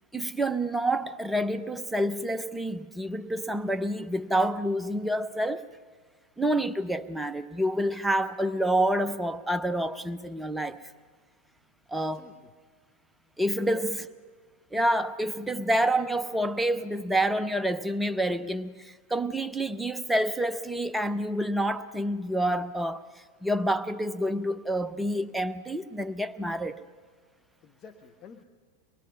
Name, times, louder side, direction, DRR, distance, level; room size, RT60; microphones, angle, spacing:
voice 1, 0.1-5.7 6.4-10.8 11.9-12.3 13.4-14.0 14.7-23.0 23.4-26.8, right 1 dB, 5° right, 0.8 m, -28 dB
voice 2, 11.9-12.5 13.7-14.0 27.6-28.4, left 6 dB, 30° left, 1.0 m, -47 dB
24.0 x 22.0 x 5.6 m
figure-of-eight pair, 90°, 0 cm